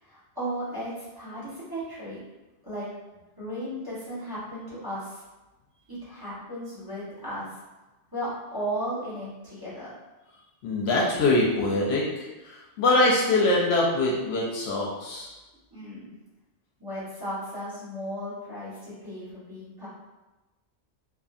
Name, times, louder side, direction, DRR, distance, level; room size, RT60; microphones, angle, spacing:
voice 1, 0.0-2.2 2.6-2.9 3.4-5.2 5.9-7.5 8.1-9.9 15.7-16.1 16.8-19.9, equal, 20° right, -11 dB, 1.0 m, -35 dB
voice 2, 10.6-15.3, left 2 dB, 70° left, -3 dB, 0.8 m, -24 dB
2.6 x 2.5 x 2.4 m, 1.1 s
omnidirectional pair, 1.2 m